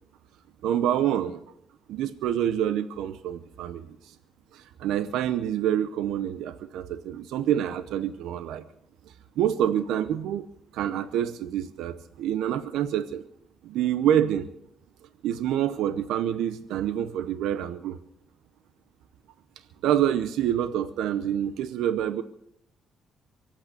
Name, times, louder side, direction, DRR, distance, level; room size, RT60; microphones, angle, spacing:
voice 1, 0.6-1.4 1.9-4.2 4.5-8.6 9.4-10.5 10.7-13.2 13.6-14.5 15.2-18.0 19.8-22.2, right 10 dB, 90° right, 12 dB, 0.7 m, -27 dB
24.0 x 8.6 x 6.8 m, 0.76 s
cardioid pair, 90°, 0 cm